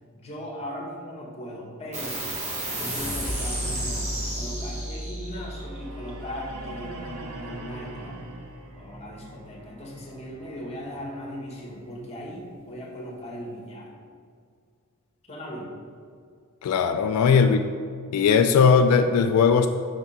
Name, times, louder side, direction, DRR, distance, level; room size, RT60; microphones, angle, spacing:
voice 1, 0.1-2.2 2.7-8.2 8.7-13.9 15.2-15.7, equal, 30° left, -3 dB, 1.2 m, -38 dB
sound 1, 1.9-8.8, right 1 dB, 30° right, 1.3 m, -33 dB
sound 2, 5.4-13.4, right 2 dB, 70° right, 0.7 m, -44 dB
voice 2, 16.6-17.6 18.1-19.7, left 6 dB, 85° left, 7 dB, 0.3 m, -18 dB
5.7 x 3.5 x 5.6 m, 2.1 s
head